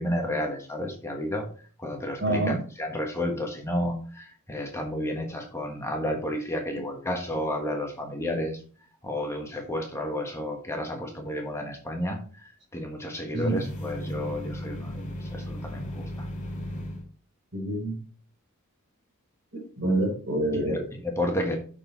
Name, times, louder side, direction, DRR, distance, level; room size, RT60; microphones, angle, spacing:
voice 1, 0.0-1.5 1.8-8.6 9.0-16.1 20.5-21.6, left 1 dB, 15° left, 2 dB, 1.3 m, -31 dB
voice 2, 2.2-2.6 13.3-13.6 17.5-18.0 19.5-20.9, right 1 dB, 55° right, 0 dB, 3.6 m, -27 dB
sound 1, 13.4-17.0, equal, 35° left, 2.4 m, -36 dB
6.5 x 6.4 x 4.4 m, 0.40 s
head